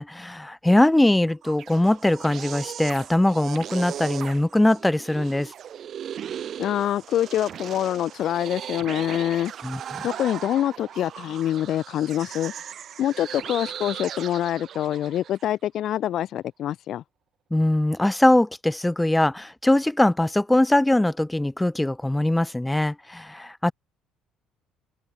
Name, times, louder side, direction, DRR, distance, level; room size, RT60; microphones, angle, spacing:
voice 1, 0.0-5.5 9.6-10.0 17.5-23.7, left 1 dB, 10° left, 0.7 m, -21 dB
sound 1, 1.3-15.4, right 9 dB, 55° right, 2.8 m, -37 dB
voice 2, 6.6-9.5 10.0-12.5 13.0-17.0, left 11 dB, 60° left, 0.8 m, -25 dB
hypercardioid pair, 60°, 0 cm